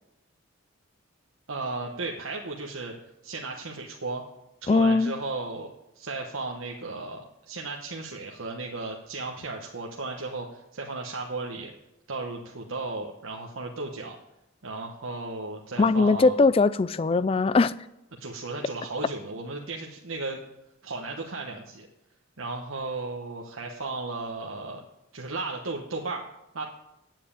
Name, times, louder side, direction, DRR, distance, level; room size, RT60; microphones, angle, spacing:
voice 1, 1.5-2.9 3.2-4.2 4.6-11.7 12.1-14.2 14.6-16.4 18.2-20.4 20.8-21.9 22.4-24.8 25.1-26.2 26.5-26.6, right 3 dB, 70° right, 1.1 m, -35 dB
voice 2, 4.7-5.1 15.8-17.7, left 3 dB, 25° left, 0.3 m, -20 dB
9.3 x 7.5 x 8.6 m
head